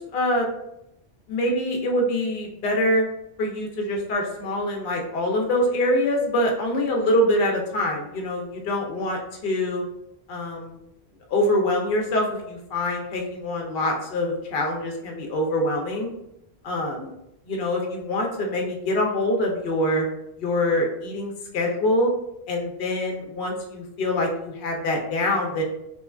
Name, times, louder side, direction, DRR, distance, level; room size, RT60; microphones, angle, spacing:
voice 1, 0.1-0.5 1.3-3.0 3.4-9.8 10.3-10.8 11.3-16.1 16.6-17.1 17.5-20.0 20.4-22.1 22.5-25.6, left 1 dB, 65° left, 0 dB, 0.7 m, -24 dB
3.0 x 2.2 x 2.2 m, 0.84 s
omnidirectional pair, 1.1 m